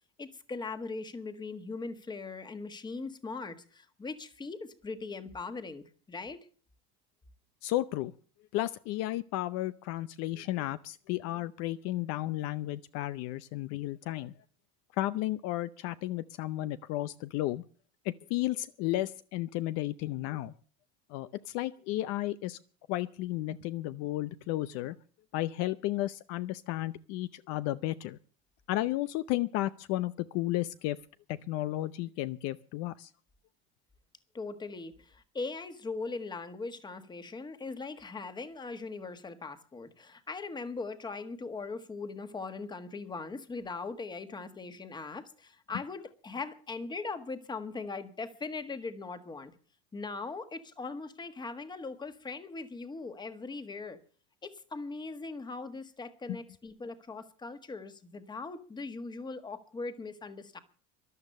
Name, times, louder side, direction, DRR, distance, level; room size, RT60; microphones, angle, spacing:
voice 1, 0.2-6.5 34.3-49.5 49.9-54.0 54.4-60.6, left 3 dB, 15° left, 1.5 m, -40 dB
voice 2, 7.6-8.1 8.5-14.3 15.0-17.6 18.0-20.5 21.1-22.6 22.9-24.9 25.3-28.2 28.7-31.0 31.3-33.1 56.3-56.4, left 16 dB, 60° left, 0.7 m, -33 dB
13.5 x 12.0 x 6.7 m
cardioid pair, 150°, 29 cm